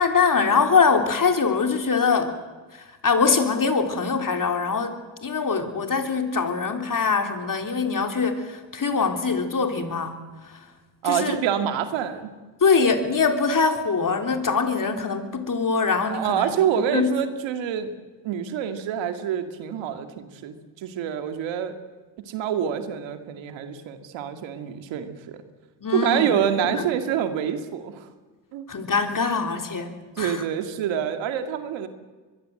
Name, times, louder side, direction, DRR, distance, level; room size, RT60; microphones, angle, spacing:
voice 1, 0.0-2.4 2.7-10.2 10.4-10.6 11.0-11.4 12.6-16.5 16.8-17.1 25.8-26.3 26.6-26.9 28.7-30.4, left 5 dB, 45° left, 6 dB, 3.7 m, -23 dB
voice 2, 11.0-12.3 16.0-17.9 18.2-21.8 22.2-25.4 25.9-28.1 28.5-28.6 30.2-31.9, right 9 dB, 90° right, 8 dB, 2.1 m, -26 dB
23.0 x 22.5 x 7.8 m, 1.3 s
supercardioid pair, 50°, 44 cm